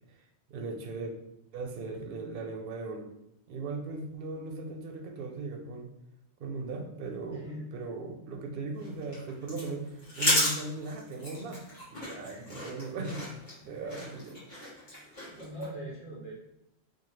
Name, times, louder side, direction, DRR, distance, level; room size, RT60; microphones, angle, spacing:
voice 1, 0.5-1.1 1.5-3.1 3.5-5.9 6.4-11.6 11.9-13.2 13.7-14.4 14.9-15.1, right 3 dB, 60° right, 3 dB, 0.7 m, -38 dB
voice 2, 7.3-7.7 12.2-12.7 13.6-14.0 14.8-15.0 15.2-16.3, equal, 65° left, -6 dB, 1.5 m, -43 dB
sound 1, 8.7-15.7, left 1 dB, 45° left, 1.3 m, -34 dB
2.8 x 2.2 x 3.1 m, 0.83 s
omnidirectional pair, 1.1 m